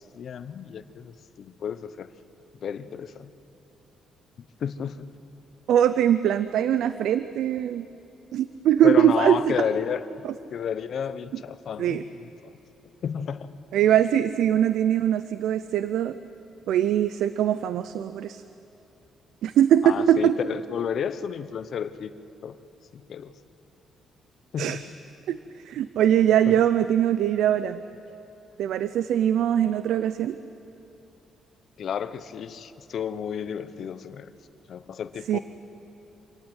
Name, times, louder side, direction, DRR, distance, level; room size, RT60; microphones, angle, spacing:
voice 1, 0.1-2.1 2.6-3.3 4.6-5.1 8.8-10.0 10.5-12.5 13.0-13.5 19.8-22.1 22.4-22.6 22.9-23.3 24.5-24.9 26.5-26.6 31.8-34.3 34.7-35.4, left 7 dB, 60° left, 13 dB, 0.9 m, -31 dB
voice 2, 5.7-7.9 8.3-9.5 11.8-12.0 13.7-16.2 16.7-18.4 19.4-20.4 24.6-24.8 25.3-25.4 25.7-27.8 28.6-30.4 35.3-35.4, right 10 dB, 80° right, 13 dB, 0.6 m, -22 dB
26.0 x 18.0 x 8.1 m, 2.9 s
cardioid pair, 90°, 0 cm